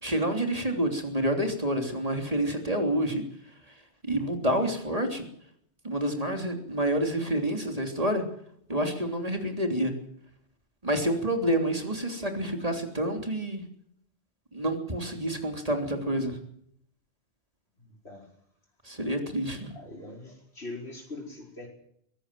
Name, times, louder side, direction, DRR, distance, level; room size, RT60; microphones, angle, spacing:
voice 1, 0.0-3.2 4.0-5.2 5.8-8.2 8.7-9.9 10.8-13.6 14.5-16.4 18.9-19.7, right 1 dB, 35° right, 4 dB, 3.5 m, -28 dB
voice 2, 17.8-18.3 19.7-21.7, left 2 dB, 70° left, 0 dB, 5.4 m, -42 dB
23.5 x 15.5 x 7.7 m, 0.70 s
omnidirectional pair, 1.1 m